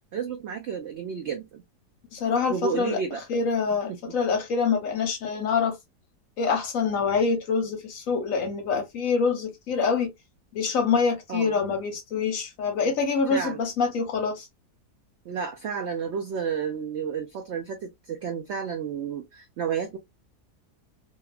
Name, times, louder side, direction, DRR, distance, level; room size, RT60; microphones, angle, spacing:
voice 1, 0.1-1.6 2.5-3.2 3.9-4.0 11.3-11.6 13.3-13.6 15.3-20.0, right 6 dB, 80° right, 0.6 m, -31 dB
voice 2, 2.1-3.0 3.3-5.8 6.4-10.1 10.5-14.5, left 5 dB, 65° left, 1.0 m, -25 dB
2.8 x 2.2 x 2.2 m
omnidirectional pair, 1.7 m